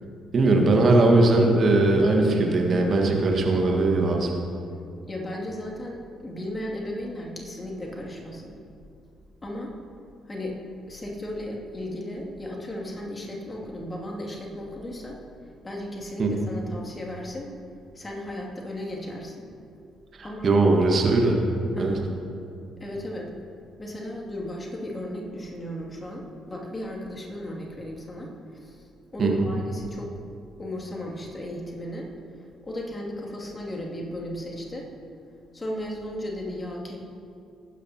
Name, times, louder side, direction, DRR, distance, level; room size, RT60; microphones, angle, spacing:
voice 1, 0.3-4.3 16.2-16.3 20.4-21.4 21.8-21.9 29.2-29.5, right 2 dB, 50° right, 1 dB, 1.6 m, -20 dB
voice 2, 5.0-8.6 9.4-9.7 10.3-10.6 10.9-15.2 15.6-17.5 17.9-19.5 20.2-20.5 21.7-22.1 22.8-23.3 23.8-28.9 29.1-30.1 30.6-32.1 32.6-34.9 35.5-37.0, left 1 dB, 30° left, -2 dB, 2.6 m, -35 dB
20.0 x 10.0 x 2.9 m, 2.5 s
figure-of-eight pair, 45°, 0 cm